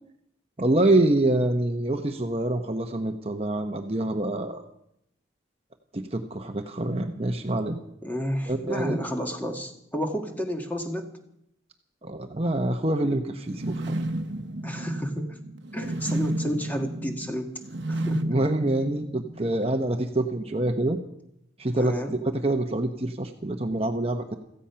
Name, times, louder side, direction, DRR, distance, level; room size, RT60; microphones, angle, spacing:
voice 1, 0.6-4.6 5.9-7.8 8.5-9.0 12.0-14.0 18.2-21.0 21.6-22.0 22.3-24.4, right 1 dB, 30° right, 5 dB, 0.9 m, -26 dB
voice 2, 8.0-11.1 14.6-15.4 15.7-17.5 17.9-18.3 21.8-22.1, equal, 10° left, 3 dB, 1.7 m, -31 dB
sound 1, 13.5-19.6, right 1 dB, 70° right, 1.0 m, -32 dB
16.0 x 15.0 x 5.7 m, 0.77 s
head